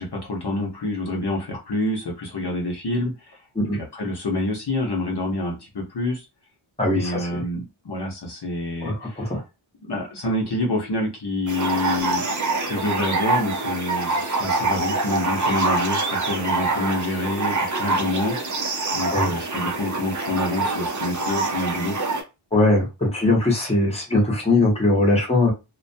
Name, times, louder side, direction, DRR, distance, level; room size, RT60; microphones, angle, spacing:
voice 1, 0.0-3.4 3.7-6.2 6.8-9.3 9.9-12.2 12.6-18.4 18.9-22.0, left 2 dB, 50° left, -1 dB, 0.8 m, -27 dB
voice 2, 6.8-7.4 8.8-9.4 19.1-19.4 22.5-25.5, left 2 dB, 10° left, -2 dB, 0.8 m, -20 dB
sound 1, 11.5-22.2, right 3 dB, 40° right, 0.5 m, -25 dB
2.4 x 2.2 x 2.6 m, 0.27 s
wide cardioid pair, 80°, 50 cm